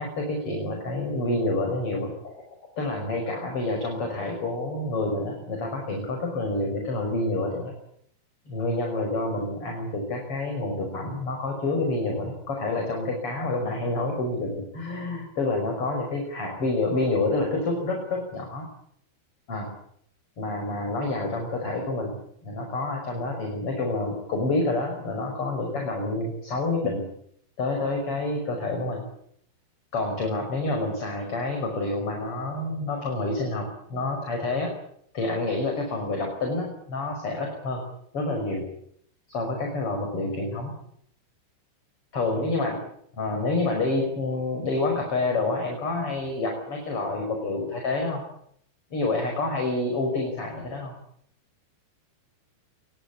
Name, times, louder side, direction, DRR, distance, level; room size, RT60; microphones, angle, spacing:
voice 1, 0.0-2.4 2.8-7.7 8.5-18.7 19.5-19.7 20.4-22.2 22.4-27.0 27.6-29.0 29.9-34.7 35.1-37.8 38.1-38.6 39.3-40.7 42.1-42.8 43.2-48.2 48.9-50.9, left 2 dB, 30° left, 3 dB, 6.3 m, -28 dB
25.5 x 23.0 x 8.5 m, 0.68 s
omnidirectional pair, 5.2 m